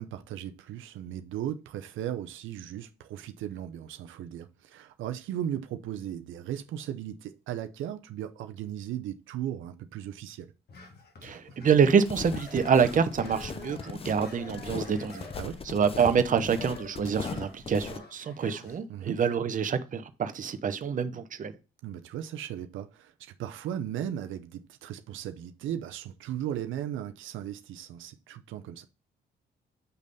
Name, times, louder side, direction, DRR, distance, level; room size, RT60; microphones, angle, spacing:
voice 1, 0.0-10.5 15.4-15.6 18.9-19.2 21.8-28.9, right 10 dB, 80° right, 0.6 m, -37 dB
sound 1, 10.7-11.9 12.3-18.8, left 4 dB, 55° left, 1.7 m, -48 dB
voice 2, 11.2-15.3 15.7-21.5, right 6 dB, 40° right, 0.7 m, -26 dB
sound 2, 12.0-18.0, left 5 dB, 30° left, 0.6 m, -39 dB
6.9 x 3.2 x 5.3 m
cardioid pair, 90°, 20 cm